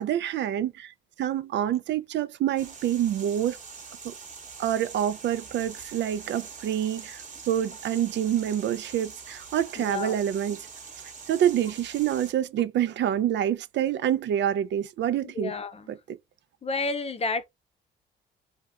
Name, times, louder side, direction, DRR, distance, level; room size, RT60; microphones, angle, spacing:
voice 1, 0.0-3.6 4.0-4.1 4.6-10.7 11.3-15.5 15.9-16.2, right 10 dB, 65° right, 0.4 m, -27 dB
sound 1, 2.6-12.3, right 5 dB, 40° right, 1.0 m, -44 dB
voice 2, 9.8-10.2 15.2-15.9 16.6-17.4, left 3 dB, 30° left, 0.6 m, -31 dB
2.7 x 2.2 x 3.5 m
cardioid pair, 90°, 20 cm